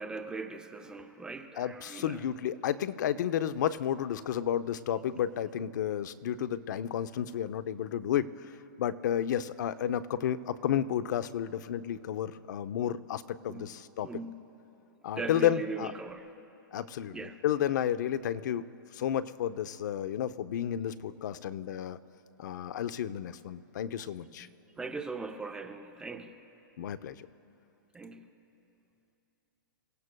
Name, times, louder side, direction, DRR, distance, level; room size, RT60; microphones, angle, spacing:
voice 1, 0.0-2.2 13.5-13.7 14.0-14.4 15.2-16.3 17.1-17.4 24.4-26.4 27.9-28.3, right 3 dB, 5° right, 5 dB, 0.6 m, -40 dB
voice 2, 1.6-14.1 15.0-15.9 16.7-18.7 18.9-22.0 22.4-24.5 26.8-27.3, left 10 dB, 60° left, 13 dB, 0.6 m, -32 dB
29.5 x 16.5 x 2.2 m, 2.9 s
hypercardioid pair, 155°, 11 cm